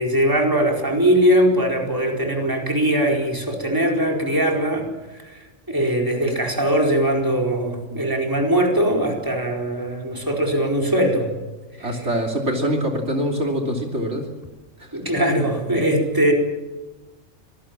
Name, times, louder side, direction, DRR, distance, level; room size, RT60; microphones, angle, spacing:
voice 1, 0.0-4.9 5.2-11.3 11.8-11.9 14.9-16.3, right 1 dB, 15° right, 1 dB, 4.6 m, -21 dB
voice 2, 11.8-14.2 14.8-14.9, equal, 65° right, 2 dB, 3.4 m, -24 dB
26.0 x 19.5 x 7.6 m, 1.2 s
omnidirectional pair, 1.3 m